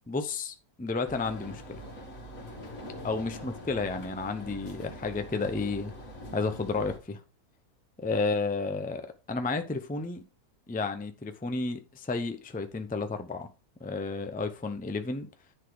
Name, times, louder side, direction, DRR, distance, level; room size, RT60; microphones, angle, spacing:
voice 1, 0.1-1.8 3.0-5.9 6.3-7.2 8.0-10.2 10.7-13.5 13.8-15.3, left 3 dB, 15° left, 0.3 m, -32 dB
sound 1, 1.1-7.0, left 1 dB, 55° left, 2.3 m, -43 dB
10.0 x 4.1 x 4.8 m
omnidirectional pair, 1.7 m